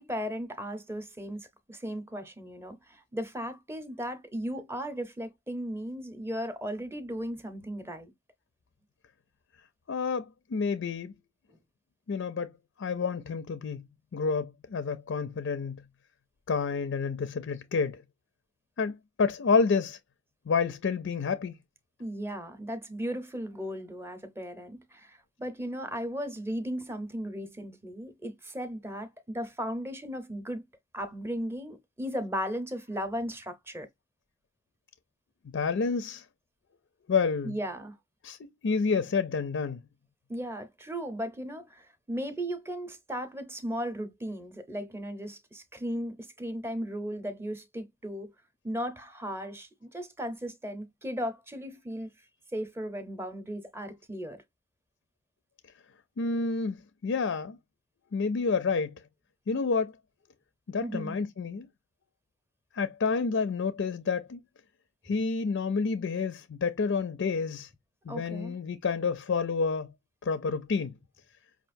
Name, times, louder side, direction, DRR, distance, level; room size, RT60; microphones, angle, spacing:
voice 1, 0.0-8.1 22.0-30.6 30.9-33.9 37.4-38.0 40.3-48.3 48.6-52.1 52.5-54.4 60.8-61.2 68.1-68.6, equal, 10° right, 0.7 m, -36 dB
voice 2, 9.9-11.1 12.1-12.5 12.8-13.9 14.1-15.8 16.5-18.0 18.8-20.0 20.5-21.6 35.4-36.2 37.1-37.5 38.2-38.4 38.6-39.8 56.2-56.8 57.0-57.6 58.1-58.9 59.5-59.9 60.7-61.7 62.7-64.4 65.0-67.7 68.1-69.9 70.2-70.9, left 5 dB, 60° left, 0.4 m, -29 dB
5.6 x 2.5 x 2.5 m
head